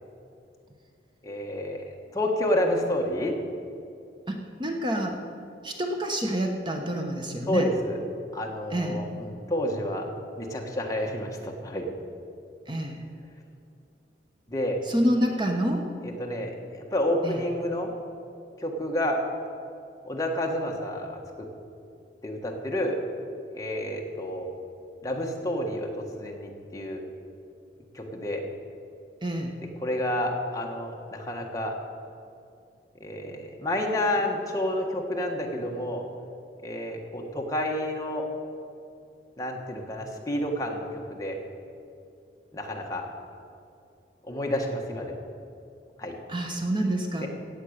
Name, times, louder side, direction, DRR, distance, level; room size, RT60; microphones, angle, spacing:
voice 1, 1.2-1.8 2.1-3.4 7.5-8.0 8.3-10.0 10.4-11.8 14.5-14.8 16.0-16.5 16.9-17.9 18.6-19.2 20.0-21.2 22.2-22.9 23.5-24.5 25.0-25.9 26.1-27.0 27.9-28.4 29.8-31.7 33.0-36.0 36.6-38.2 39.4-41.4 42.5-43.0 44.3-45.2 46.0-46.1 47.2-47.3, left 1 dB, 20° left, 0 dB, 1.4 m, -29 dB
voice 2, 4.3-5.2 5.6-7.7 8.7-9.0 12.7-13.0 14.9-15.8 17.2-17.4 29.2-29.5 46.3-47.3, right 1 dB, 25° right, 3 dB, 1.0 m, -27 dB
16.0 x 8.4 x 6.6 m, 2.6 s
head